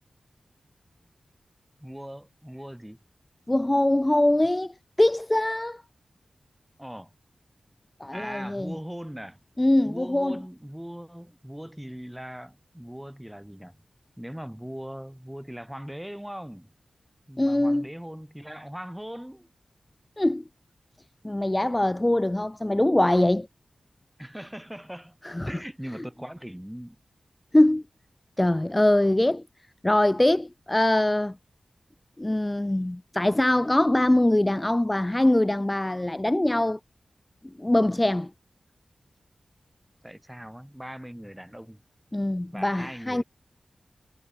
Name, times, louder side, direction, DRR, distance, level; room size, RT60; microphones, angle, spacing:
voice 1, 1.8-3.0 6.8-7.1 8.1-9.4 9.8-13.8 14.2-16.7 17.3-19.5 24.2-25.2 25.4-27.0 40.0-41.8 42.5-43.2, equal, 5° right, 6.3 m, -40 dB
voice 2, 3.5-5.8 8.0-8.7 9.6-10.4 17.4-17.9 20.2-20.4 21.2-23.5 25.2-25.5 27.5-27.8 28.4-29.4 29.8-31.4 32.2-36.8 37.6-38.3 42.1-43.2, left 1 dB, 15° left, 1.3 m, -23 dB
wide cardioid pair, 100°, 0 cm